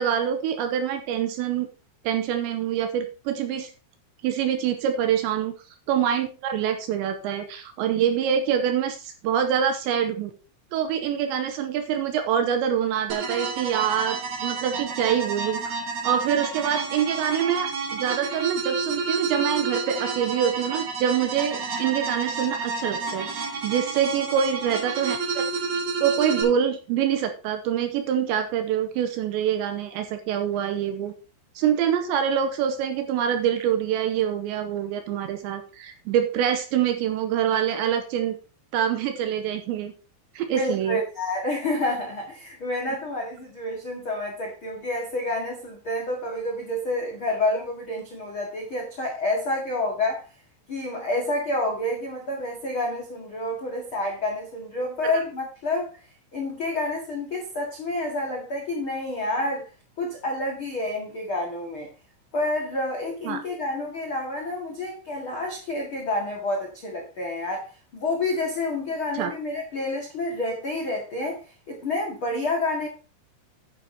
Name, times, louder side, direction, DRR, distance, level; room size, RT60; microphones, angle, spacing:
voice 1, 0.0-1.7 2.0-3.7 4.2-5.5 5.9-10.3 10.7-25.4 26.0-31.1 31.6-38.4 38.7-39.9 40.4-41.0 63.3-63.4 69.1-69.3, right 9 dB, 80° right, 2.7 m, -25 dB
sound 1, 13.1-26.4, right 4 dB, 40° right, 3.4 m, -30 dB
voice 2, 40.5-50.2 50.7-55.9 56.3-59.7 60.0-61.9 62.3-72.9, left 2 dB, 85° left, 1.1 m, -29 dB
11.0 x 10.0 x 2.9 m
omnidirectional pair, 5.8 m